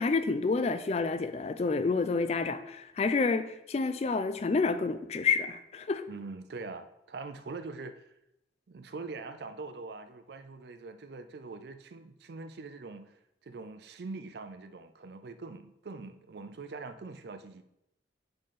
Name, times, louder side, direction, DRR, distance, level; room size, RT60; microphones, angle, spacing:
voice 1, 0.0-6.0, left 4 dB, 35° left, 0.3 m, -29 dB
voice 2, 6.1-8.0 8.7-17.6, right 3 dB, 60° right, 0.4 m, -43 dB
6.5 x 3.8 x 3.8 m
head